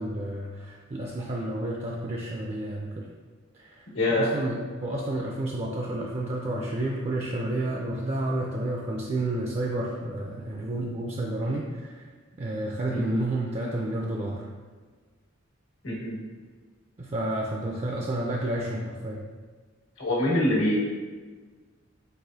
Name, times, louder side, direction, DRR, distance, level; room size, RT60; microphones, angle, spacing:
voice 1, 0.0-3.1 3.5-12.1 12.4-14.5 17.0-19.2, right 1 dB, 30° right, -1 dB, 0.4 m, -30 dB
voice 2, 3.9-4.3 12.9-13.2 15.8-16.2 20.0-20.8, left 1 dB, 80° left, -5 dB, 1.4 m, -25 dB
4.7 x 4.0 x 2.7 m, 1.4 s
head